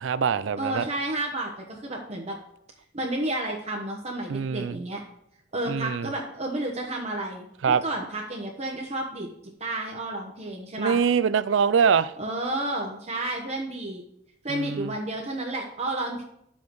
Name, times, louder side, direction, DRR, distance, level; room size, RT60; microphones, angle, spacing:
voice 1, 0.0-0.9 4.3-4.8 5.7-6.1 7.6-7.8 10.8-12.1 14.5-14.9, right 6 dB, 90° right, 0.4 m, -24 dB
voice 2, 0.6-2.4 2.9-5.0 5.5-9.3 9.6-11.0 12.2-14.0 14.4-16.2, right 1 dB, 35° right, 1.0 m, -31 dB
10.5 x 7.2 x 3.1 m
head